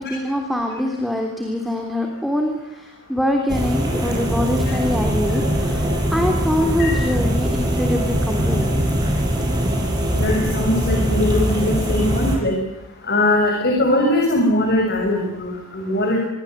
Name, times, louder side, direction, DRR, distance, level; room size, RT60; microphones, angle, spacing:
voice 1, 0.0-8.8, left 1 dB, ahead, 3 dB, 3.4 m, -24 dB
sound 1, 3.5-12.4, equal, 20° right, 7.9 m, -21 dB
voice 2, 10.1-12.5 13.1-16.2, left 1 dB, 50° left, 1 dB, 6.6 m, -20 dB
26.5 x 22.5 x 8.2 m, 0.91 s
head